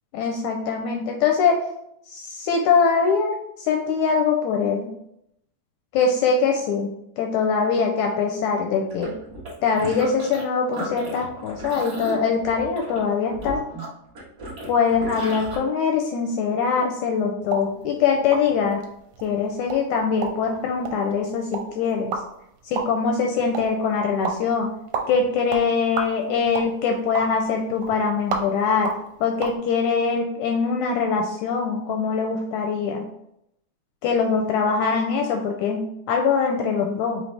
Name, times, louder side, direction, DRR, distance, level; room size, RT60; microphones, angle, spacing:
voice 1, 0.1-1.6 2.1-4.9 5.9-6.9 7.2-9.1 9.6-13.6 14.7-18.8 19.2-22.1 22.7-24.7 25.1-28.9 29.2-33.0 34.0-37.2, left 5 dB, 80° left, 2 dB, 1.7 m, -23 dB
sound 1, 8.9-10.4 10.7-15.6, right 1 dB, 55° right, 1.0 m, -35 dB
sound 2, 17.4-29.6, right 5 dB, 80° right, 2.1 m, -34 dB
5.5 x 3.0 x 3.2 m, 0.77 s
omnidirectional pair, 3.8 m